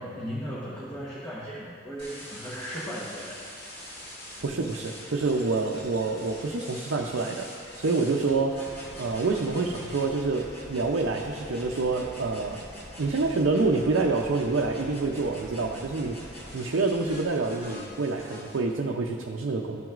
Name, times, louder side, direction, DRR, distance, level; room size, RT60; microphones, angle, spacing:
voice 1, 0.0-3.6, equal, 15° left, -8 dB, 1.0 m, -37 dB
sound 1, 2.0-18.6, equal, 55° left, 2.0 m, -44 dB
voice 2, 4.4-7.5 7.8-12.6 13.0-19.8, right 3 dB, 85° right, 0 dB, 0.5 m, -27 dB
12.5 x 6.0 x 2.5 m, 2.2 s
head